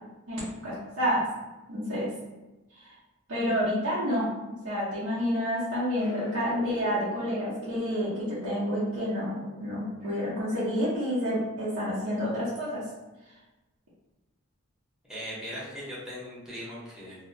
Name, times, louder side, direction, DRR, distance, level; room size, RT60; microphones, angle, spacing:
voice 1, 0.3-1.3 1.7-2.1 3.3-4.2 4.6-12.8, equal, 75° right, -10 dB, 0.8 m, -29 dB
sound 1, 6.0-12.1, left 1 dB, 85° left, 0.5 m, -44 dB
voice 2, 15.1-17.2, equal, 5° right, -9 dB, 0.8 m, -39 dB
2.6 x 2.1 x 2.6 m, 1.1 s
head